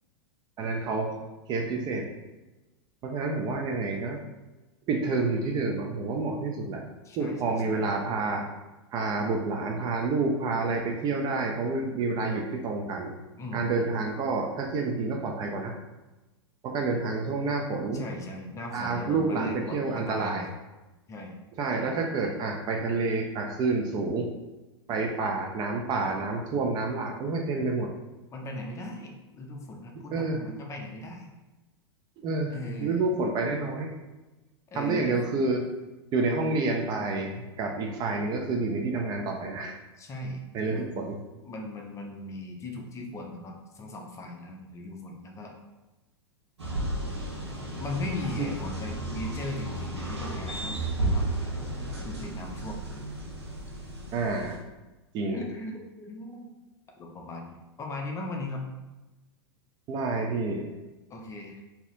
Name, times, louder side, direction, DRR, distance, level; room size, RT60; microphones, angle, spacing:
voice 1, 0.6-1.2 1.5-2.1 3.0-4.2 4.9-6.8 7.2-8.5 8.9-13.1 13.5-15.8 16.6-18.0 18.7-20.4 21.6-24.3 24.9-27.9 30.1-30.4 32.2-34.0 34.7-35.6 36.1-39.8 40.5-41.2 48.4-48.5 54.1-54.6 55.1-55.4 59.9-60.7, right 3 dB, 30° right, 2 dB, 0.4 m, -29 dB
voice 2, 7.0-7.8 13.4-13.9 17.9-20.5 21.1-21.3 28.3-31.3 32.5-33.0 34.7-35.2 40.0-41.1 41.4-45.5 47.8-51.3 52.0-52.8 55.3-56.5 57.0-58.7 61.1-61.6, left 1 dB, 20° left, 1 dB, 0.6 m, -38 dB
sound 1, 46.6-54.6, right 1 dB, 80° right, 0.9 m, -33 dB
4.0 x 2.7 x 2.6 m, 1.1 s
figure-of-eight pair, 95°, 14 cm